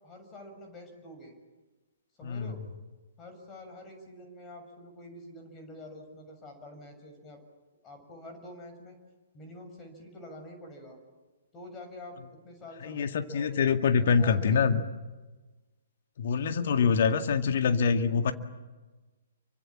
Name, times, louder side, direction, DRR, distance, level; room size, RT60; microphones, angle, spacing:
voice 1, 0.0-1.3 2.2-2.6 3.2-7.4 7.8-9.0 9.3-11.0 11.5-12.2 12.4-14.6, left 1 dB, 20° left, 4 dB, 6.9 m, -47 dB
voice 2, 2.2-2.5 12.8-14.8 16.2-18.3, left 6 dB, 55° left, 7 dB, 2.0 m, -25 dB
29.0 x 24.5 x 7.5 m, 1.2 s
figure-of-eight pair, 120°, 0 cm